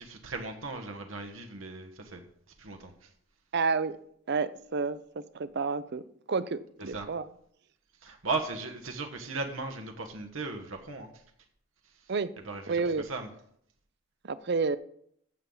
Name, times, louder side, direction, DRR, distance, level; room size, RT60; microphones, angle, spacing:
voice 1, 0.0-2.2 2.6-3.1 6.8-7.1 8.0-11.2 11.8-12.1 12.4-13.3, right 3 dB, 90° right, 1.3 m, -37 dB
voice 2, 3.5-4.0 4.3-5.0 5.3-6.0 6.3-7.3 12.1-12.3 12.7-13.0 14.2-14.8, right 4 dB, 55° right, 0.6 m, -29 dB
15.0 x 7.1 x 3.9 m
head